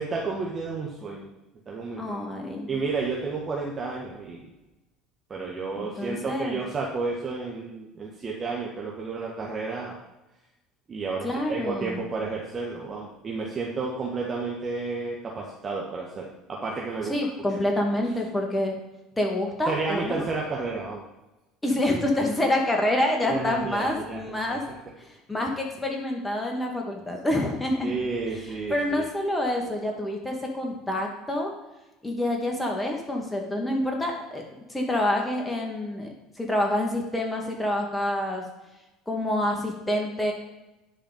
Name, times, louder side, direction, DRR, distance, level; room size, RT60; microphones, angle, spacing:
voice 1, 0.0-1.3 1.7-2.3 2.7-4.5 5.3-10.0 10.9-17.1 19.7-21.0 23.2-24.2 24.5-24.8 27.8-29.1, right 4 dB, 35° right, -3 dB, 1.7 m, -31 dB
voice 2, 2.0-2.7 5.8-6.6 11.2-12.0 17.1-18.8 19.2-20.2 21.6-24.6 25.0-27.9 28.3-31.5 32.0-34.4 34.7-36.1 36.4-38.4 39.1-40.3, left 1 dB, 15° left, 1 dB, 2.6 m, -27 dB
10.5 x 4.9 x 5.5 m, 1.0 s
hypercardioid pair, 70°, 0 cm